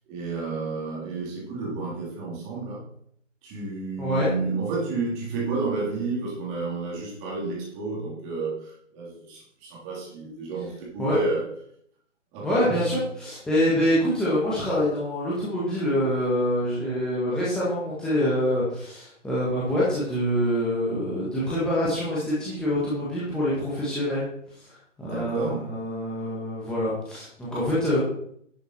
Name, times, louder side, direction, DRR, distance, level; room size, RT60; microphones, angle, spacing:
voice 1, 0.1-2.8 3.4-11.4 12.3-12.8 25.0-25.7, right 3 dB, 15° right, -4 dB, 3.4 m, -31 dB
voice 2, 12.4-24.2 25.0-28.0, equal, ahead, -9 dB, 1.6 m, -25 dB
11.0 x 6.8 x 4.4 m, 0.67 s
figure-of-eight pair, 145°, 38 cm